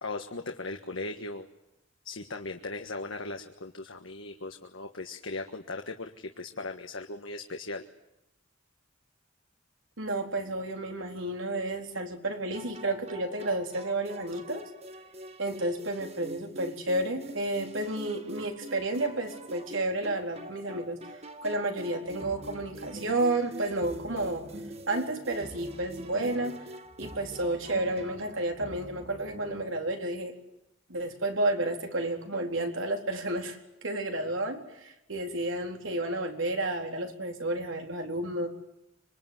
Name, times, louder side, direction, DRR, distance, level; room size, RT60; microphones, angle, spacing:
voice 1, 0.0-1.5 2.0-7.8, left 2 dB, 90° left, 4 dB, 1.6 m, -38 dB
voice 2, 10.0-14.7 15.4-21.0 21.4-24.4 24.9-26.7 27.0-30.3 30.9-38.5, right 2 dB, 85° right, 3 dB, 4.0 m, -31 dB
sound 1, 12.5-28.5, right 2 dB, 35° right, 1.6 m, -45 dB
sound 2, 22.0-23.3 23.6-24.9 25.2-26.5 26.8-29.7, equal, 50° right, 4.3 m, -47 dB
26.0 x 24.0 x 9.5 m, 0.87 s
head